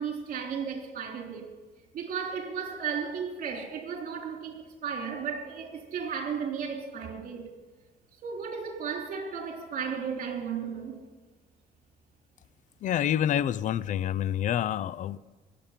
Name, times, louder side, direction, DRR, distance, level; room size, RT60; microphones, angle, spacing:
voice 1, 0.0-1.5 1.9-7.5 8.2-11.0, right 6 dB, 55° right, 3.4 m, -34 dB
voice 2, 12.8-15.2, left 10 dB, 50° left, 0.5 m, -27 dB
21.0 x 8.5 x 5.8 m
cardioid pair, 110°, 17 cm